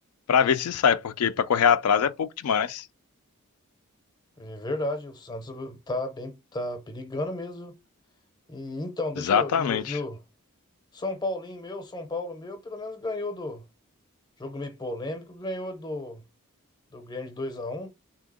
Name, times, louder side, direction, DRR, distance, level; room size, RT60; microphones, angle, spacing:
voice 1, 0.3-2.9 9.2-10.0, left 7 dB, 80° left, 0.4 m, -23 dB
voice 2, 4.4-7.8 8.5-10.2 10.9-13.6 14.4-16.2 16.9-17.9, left 2 dB, 20° left, 0.6 m, -33 dB
3.5 x 2.8 x 4.0 m
head